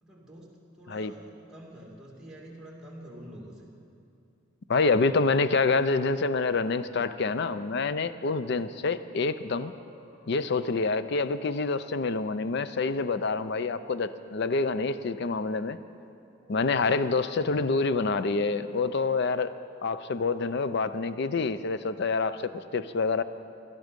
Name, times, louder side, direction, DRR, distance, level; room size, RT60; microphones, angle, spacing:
voice 1, 0.0-3.7, equal, 5° right, -3 dB, 2.4 m, -47 dB
voice 2, 4.7-9.7 10.3-15.8 16.5-19.5 19.8-23.2, left 4 dB, 55° left, 13 dB, 0.5 m, -27 dB
sound 1, 9.3-10.9 11.4-12.2 12.7-14.0 14.5-15.6 16.4-17.0, equal, 35° left, 3.6 m, -57 dB
17.5 x 12.0 x 5.2 m, 2.6 s
head